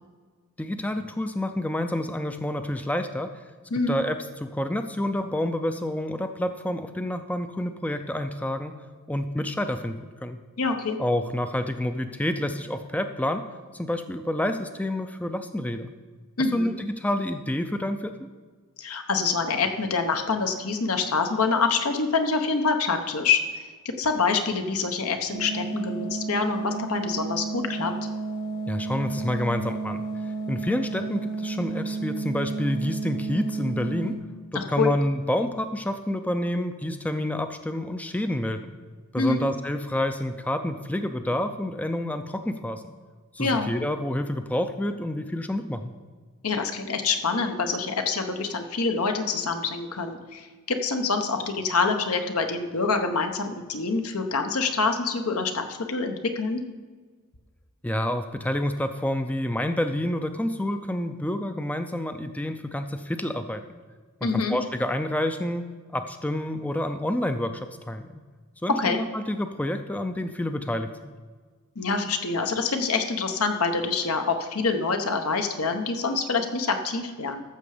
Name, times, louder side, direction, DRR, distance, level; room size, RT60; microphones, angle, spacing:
voice 1, 0.6-3.4 3.9-8.7 9.1-10.4 11.0-13.5 13.7-15.9 16.5-18.1 28.7-34.2 34.5-38.7 39.1-42.8 43.3-45.9 57.8-63.6 64.2-65.6 65.9-68.2 68.6-71.1, left 1 dB, 5° left, 8 dB, 0.4 m, -28 dB
voice 2, 10.6-11.0 16.4-16.7 18.8-27.9 34.5-34.9 39.2-39.5 43.4-43.7 46.4-56.6 64.2-64.6 68.8-69.0 71.8-77.4, left 4 dB, 75° left, 6 dB, 1.1 m, -26 dB
sound 1, 25.3-34.2, right 4 dB, 45° left, 1.4 m, -32 dB
13.5 x 6.8 x 5.0 m, 1.5 s
head